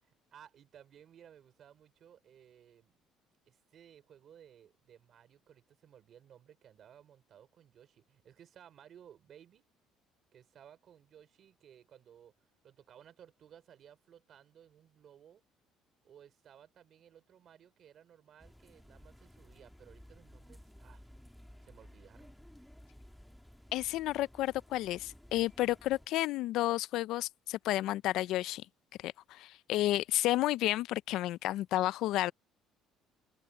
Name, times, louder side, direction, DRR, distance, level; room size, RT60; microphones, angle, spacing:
voice 1, 0.0-3.0 3.5-9.7 10.3-15.4 16.0-21.1 21.6-22.3, right 9 dB, 45° right, 4.7 m, -58 dB
sound 1, 18.4-26.1, equal, ahead, 2.3 m, -56 dB
voice 2, 23.7-28.7 29.0-32.3, left 15 dB, 65° left, 0.4 m, -31 dB
cardioid pair, 155°, 0 cm